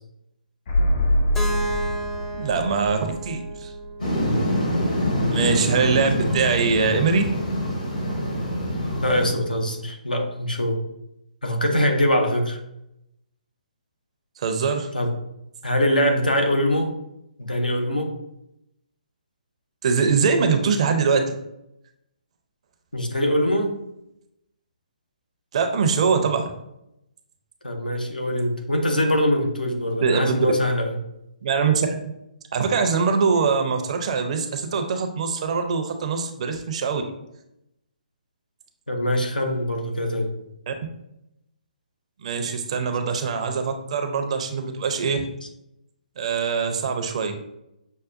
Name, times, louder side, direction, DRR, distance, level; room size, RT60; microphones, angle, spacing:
sound 1, 0.7-4.4 4.7-4.8, left 1 dB, 55° left, 1.2 m, -25 dB
Keyboard (musical), 1.3-5.3, right 1 dB, 10° left, 0.5 m, -33 dB
voice 1, 2.3-3.7 5.3-7.3 14.4-14.9 19.8-21.3 25.5-26.5 30.0-30.5 31.4-32.1 32.5-37.0 40.7-40.8 42.2-45.2 46.2-47.3, right 5 dB, 50° right, 6 dB, 0.5 m, -23 dB
sound 2, 4.0-9.3, equal, 70° left, 1.5 m, -25 dB
voice 2, 9.0-10.8 11.4-12.6 14.9-15.1 15.6-16.9 17.4-18.1 22.9-23.7 27.6-31.0 38.9-40.3 45.4-45.5, equal, 90° left, 3 dB, 0.7 m, -23 dB
6.1 x 2.1 x 2.5 m, 0.84 s
figure-of-eight pair, 135°, 5 cm